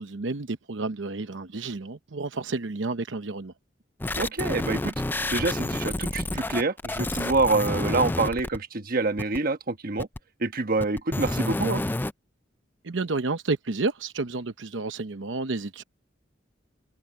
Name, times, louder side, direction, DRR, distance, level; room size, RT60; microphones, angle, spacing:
voice 1, 0.0-3.5 12.8-15.8, right 3 dB, 85° right, 0.9 m, -30 dB
sound 1, 4.0-8.6 9.2-9.4 10.0-10.2 10.8-12.1, left 2 dB, 10° left, 0.4 m, -29 dB
voice 2, 4.1-4.9 5.3-10.1 10.4-11.8, right 3 dB, 50° right, 1.2 m, -26 dB
head